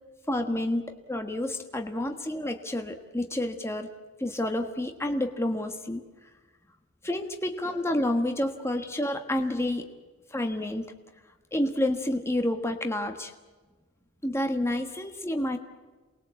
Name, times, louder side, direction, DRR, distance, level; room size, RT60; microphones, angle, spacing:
voice 1, 0.3-0.8 1.1-3.9 4.2-6.0 7.0-9.9 10.3-10.9 11.5-13.3 14.2-15.6, left 1 dB, 10° left, 5 dB, 1.4 m, -29 dB
28.5 x 21.0 x 8.2 m, 1.3 s
head